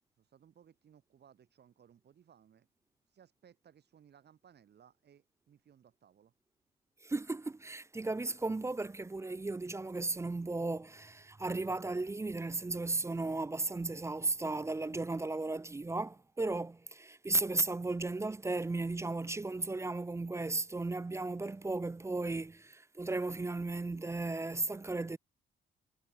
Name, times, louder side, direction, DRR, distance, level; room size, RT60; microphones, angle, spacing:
voice 1, 0.2-2.7 3.1-6.3, right 8 dB, 55° right, 4.2 m, -62 dB
voice 2, 7.0-25.2, right 2 dB, 15° right, 0.5 m, -35 dB
cardioid pair, 90°, 20 cm